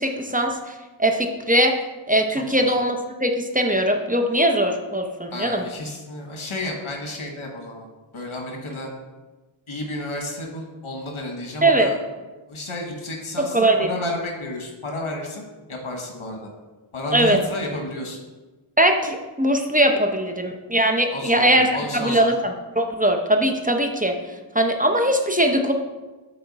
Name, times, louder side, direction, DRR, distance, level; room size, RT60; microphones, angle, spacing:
voice 1, 0.0-1.7 2.1-5.6 11.6-11.9 13.5-13.9 17.1-17.4 18.8-21.7 22.0-22.3 22.8-24.1 24.5-25.7, right 1 dB, 15° right, 4 dB, 0.6 m, -20 dB
voice 2, 2.4-2.7 5.3-7.9 8.1-8.9 9.7-12.0 12.5-15.4 15.7-16.5 16.9-18.2 21.1-22.3, left 1 dB, 85° left, 1 dB, 1.3 m, -31 dB
7.8 x 4.4 x 4.0 m, 1.2 s
wide cardioid pair, 70°, 48 cm